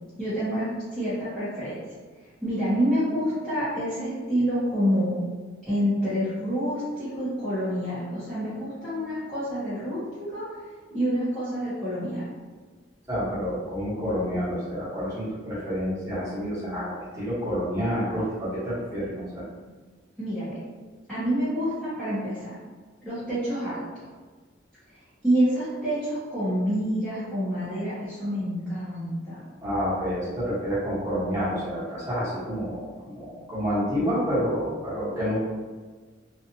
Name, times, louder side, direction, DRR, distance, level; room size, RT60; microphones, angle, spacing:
voice 1, 0.2-1.9 2.4-5.2 5.6-10.4 10.9-12.3 20.2-20.6 21.1-22.6 23.0-23.8 25.2-29.4, equal, 5° left, -16 dB, 0.8 m, -27 dB
voice 2, 13.1-19.4 29.6-35.4, equal, 15° right, -12 dB, 1.1 m, -29 dB
2.5 x 2.4 x 2.7 m, 1.4 s
head